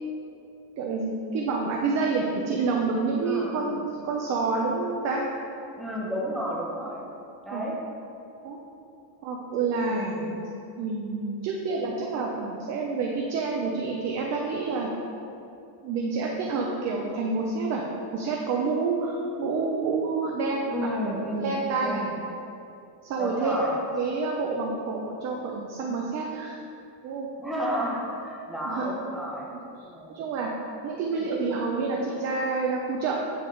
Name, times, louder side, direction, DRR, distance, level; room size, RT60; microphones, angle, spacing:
voice 1, 0.8-5.2 7.5-7.6 8.4-8.6 9.2-10.5 10.8-14.9 15.8-17.8 18.1-20.7 21.0-22.0 23.1-23.5 24.0-26.6 27.0-27.3 28.6-28.9 30.1-30.5 30.8-33.2, right 4 dB, 35° right, -1 dB, 0.5 m, -28 dB
voice 2, 3.2-3.9 5.8-7.0 7.4-7.7 9.9-10.3 20.7-22.1 23.2-23.8 27.4-29.5 29.8-30.1 31.1-31.3, equal, ahead, -5 dB, 0.8 m, -32 dB
9.2 x 3.5 x 3.7 m, 2.7 s
cardioid pair, 160°, 50 cm